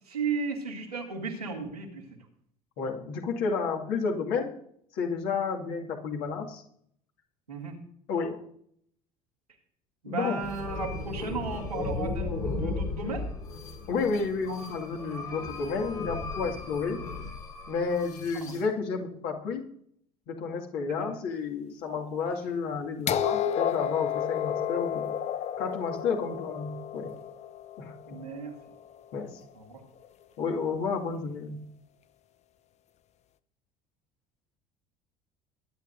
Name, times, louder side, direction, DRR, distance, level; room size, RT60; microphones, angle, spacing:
voice 1, 0.1-2.1 7.5-7.8 10.0-12.3 12.6-13.3 16.4-16.5 18.4-18.5 20.9-21.1 22.2-22.3 28.1-28.5 29.5-29.8, right 4 dB, 85° right, -1 dB, 2.3 m, -35 dB
voice 2, 2.8-4.5 4.9-6.6 8.1-8.4 10.1-10.5 13.9-17.1 17.7-19.6 20.3-25.1 25.6-27.1 27.8-27.9 29.1-29.4 30.4-31.6, left 5 dB, 55° left, 0 dB, 2.2 m, -31 dB
sound 1, 10.4-18.6, left 3 dB, 70° left, 4.4 m, -36 dB
sound 2, 23.1-28.9 30.0-30.1, left 9 dB, 35° left, 0.7 m, -32 dB
22.0 x 9.7 x 2.7 m, 0.67 s
figure-of-eight pair, 65°, 19 cm